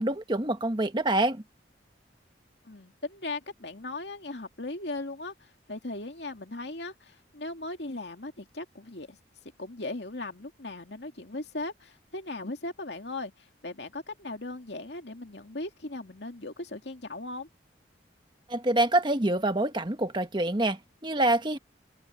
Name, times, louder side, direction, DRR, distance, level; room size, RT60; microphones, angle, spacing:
voice 1, 0.0-1.4 18.5-21.6, right 1 dB, 25° right, 1.2 m, -26 dB
voice 2, 2.6-9.2 9.6-17.5, left 2 dB, 70° left, 2.4 m, -38 dB
head